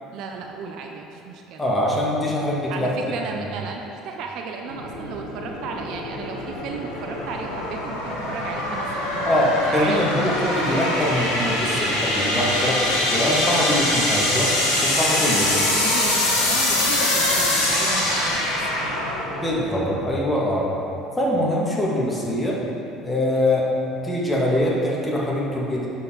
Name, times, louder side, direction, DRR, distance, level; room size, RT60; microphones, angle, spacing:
voice 1, 0.1-1.6 2.7-10.8 15.1-19.0, right 5 dB, 60° right, 2 dB, 0.6 m, -34 dB
voice 2, 1.6-2.9 3.3-3.5 9.3-15.4 19.3-20.6 21.2-22.6 23.0-23.7 24.0-25.9, left 1 dB, 15° left, -4 dB, 1.9 m, -23 dB
sound 1, 4.6-20.1, left 1 dB, 85° left, 1.3 m, -24 dB
11.5 x 4.6 x 3.9 m, 2.8 s
hypercardioid pair, 60°, 0 cm